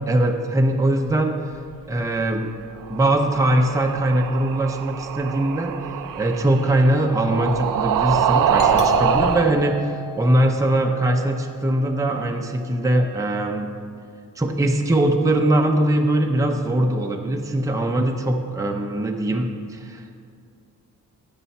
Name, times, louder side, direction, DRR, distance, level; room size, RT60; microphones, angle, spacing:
voice 1, 0.1-1.3 1.9-2.5 2.9-5.8 6.1-13.7 14.4-20.0, right 1 dB, 10° right, 3 dB, 0.6 m, -21 dB
sound 1, 2.8-9.5, right 8 dB, 80° right, 0.5 m, -24 dB
Doorbell, 8.6-11.9, left 5 dB, 65° left, 0.8 m, -33 dB
15.0 x 5.5 x 4.2 m, 2.3 s
wide cardioid pair, 145°, 33 cm